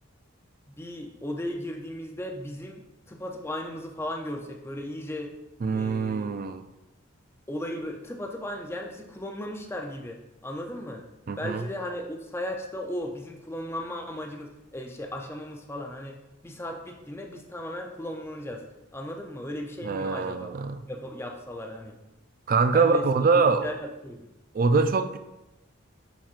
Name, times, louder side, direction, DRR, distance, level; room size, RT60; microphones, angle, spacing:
voice 1, 0.7-2.8 3.1-5.3 5.7-6.4 7.5-11.1 11.4-16.2 16.4-18.6 18.9-20.5 20.9-22.0 22.7-23.0 23.3-24.3, left 1 dB, 10° left, 0.5 m, -36 dB
voice 2, 5.6-6.6 11.3-11.7 19.8-20.8 22.5-23.7 24.5-25.2, right 4 dB, 40° right, 0.4 m, -24 dB
7.2 x 5.8 x 2.5 m
head